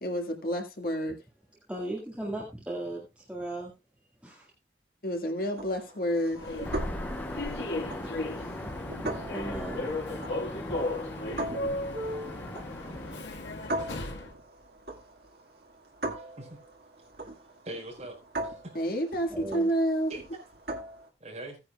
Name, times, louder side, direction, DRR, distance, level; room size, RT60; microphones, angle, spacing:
voice 1, 0.0-1.2 5.0-6.4 18.7-20.1, equal, 55° left, 1.8 m, -29 dB
voice 2, 1.7-3.7 4.2-4.5 8.8-9.8 19.3-19.7, right 1 dB, 5° right, 1.8 m, -37 dB
sound 1, 5.5-21.1, right 1 dB, 60° right, 1.9 m, -41 dB
Human voice / Subway metro underground, 6.3-14.3, left 2 dB, 90° left, 1.6 m, -35 dB
sound 2, 6.6-13.2, left 1 dB, 10° left, 0.6 m, -40 dB
voice 3, 16.1-16.6 17.6-18.8 20.1-20.2 21.2-21.6, right 1 dB, 40° right, 4.9 m, -42 dB
16.5 x 9.7 x 2.3 m
head